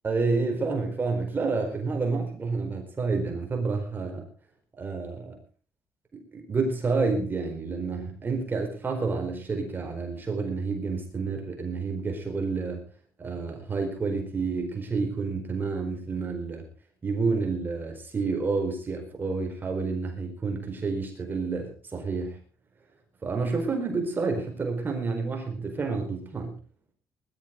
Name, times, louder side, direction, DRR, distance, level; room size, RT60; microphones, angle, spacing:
voice 1, 0.0-4.3 4.8-5.4 6.3-12.8 13.2-16.6 17.0-22.4 23.2-26.6, right 4 dB, 30° right, 3 dB, 4.4 m, -29 dB
20.0 x 12.5 x 3.8 m, 0.39 s
cardioid pair, 130°, 7 cm